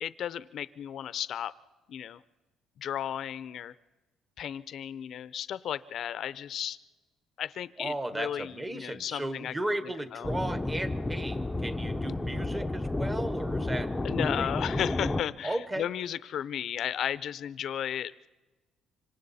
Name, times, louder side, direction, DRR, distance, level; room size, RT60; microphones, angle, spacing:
voice 1, 0.0-1.5 1.9-2.2 2.8-3.7 4.4-6.8 7.4-9.5 10.1-10.3 14.0-18.3, left 10 dB, 60° left, 16 dB, 0.6 m, -34 dB
voice 2, 7.8-14.5 15.4-15.9, right 1 dB, 15° right, 10 dB, 1.2 m, -35 dB
sound 1, 10.2-15.2, left 2 dB, 10° left, 0.7 m, -31 dB
26.0 x 25.5 x 4.2 m, 1.2 s
cardioid pair, 125°, 0 cm